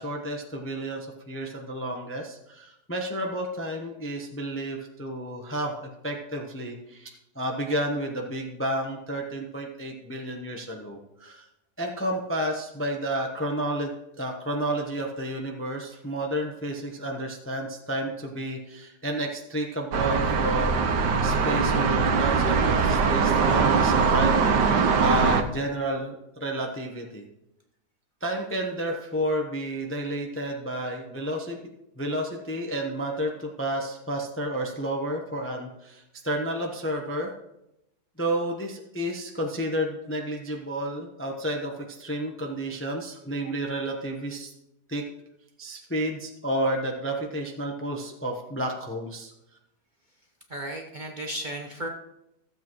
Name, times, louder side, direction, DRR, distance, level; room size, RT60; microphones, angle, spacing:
voice 1, 0.0-11.4 11.8-24.5 25.0-27.2 28.2-31.6 32.0-37.3 38.2-44.5 44.9-45.0 45.6-49.3, right 1 dB, 10° left, 2 dB, 0.7 m, -31 dB
sound 1, 19.9-25.4, right 5 dB, 85° right, 1.4 m, -22 dB
voice 2, 50.5-51.9, right 1 dB, 35° right, 1 dB, 0.9 m, -34 dB
15.0 x 8.0 x 3.1 m, 0.87 s
omnidirectional pair, 1.8 m